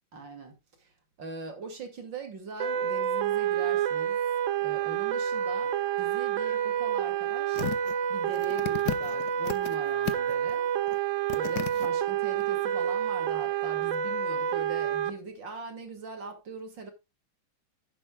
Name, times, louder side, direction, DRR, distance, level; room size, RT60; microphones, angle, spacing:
voice 1, 0.1-0.9 1.2-4.2 4.6-7.6 8.1-10.7 11.3-16.9, right 3 dB, 60° right, 3.0 m, -41 dB
sound 1, 2.6-15.1, right 9 dB, 85° right, 0.6 m, -28 dB
sound 2, 7.5-7.9 8.3-9.8 10.1-10.5 10.9-11.0 11.3-11.9 12.4-12.5, left 10 dB, 60° left, 1.2 m, -34 dB
11.5 x 11.0 x 2.3 m
omnidirectional pair, 2.3 m